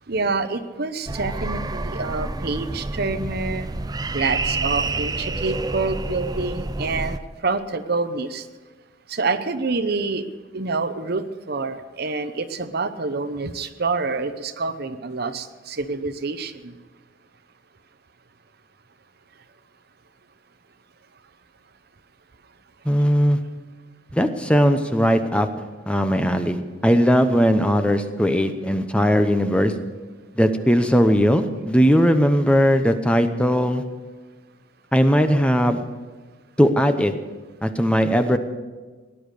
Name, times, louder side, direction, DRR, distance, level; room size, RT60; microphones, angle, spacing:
voice 1, 0.1-3.7 4.1-8.4 9.1-10.3 10.5-16.7, right 3 dB, 55° right, 10 dB, 0.9 m, -27 dB
sound 1, 1.1-7.2, right 3 dB, 20° right, 0.5 m, -28 dB
voice 2, 22.9-23.4 24.1-25.5 25.9-29.7 30.4-33.8 34.9-35.8 36.6-37.1 37.6-38.4, equal, 5° left, 8 dB, 0.8 m, -18 dB
18.0 x 11.0 x 6.7 m, 1.3 s
head